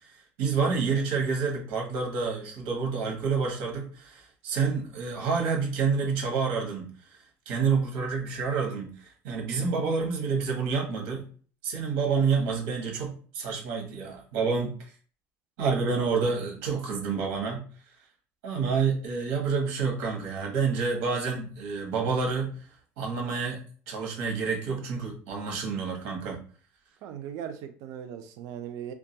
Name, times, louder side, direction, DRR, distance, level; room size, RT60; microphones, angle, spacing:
voice 1, 0.0-6.9 7.5-11.3 11.6-14.7 15.6-17.6 18.4-22.5 23.0-23.6 23.9-26.4, right 5 dB, 80° right, 1.0 m, -28 dB
voice 2, 15.8-16.3 18.9-19.0 21.0-21.1 24.7-24.8 27.0-28.9, right 9 dB, 55° right, 0.4 m, -40 dB
2.2 x 2.2 x 2.7 m
cardioid pair, 170°, 7 cm